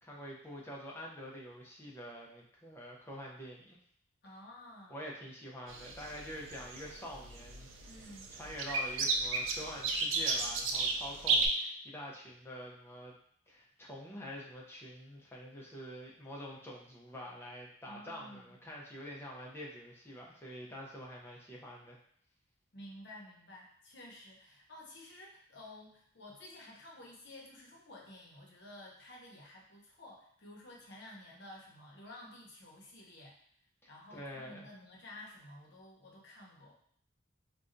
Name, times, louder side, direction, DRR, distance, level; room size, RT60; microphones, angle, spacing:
voice 1, 0.0-3.8 4.9-7.7 8.3-13.1 13.5-22.0 33.8-34.7, equal, 10° left, -3 dB, 0.5 m, -46 dB
voice 2, 4.2-5.0 7.8-8.3 17.9-18.6 22.7-33.4 33.9-36.7, left 1 dB, 60° left, -2 dB, 0.8 m, -52 dB
sound 1, 5.7-11.5, right 4 dB, 80° right, 0.4 m, -33 dB
4.1 x 2.2 x 2.5 m, 0.63 s
head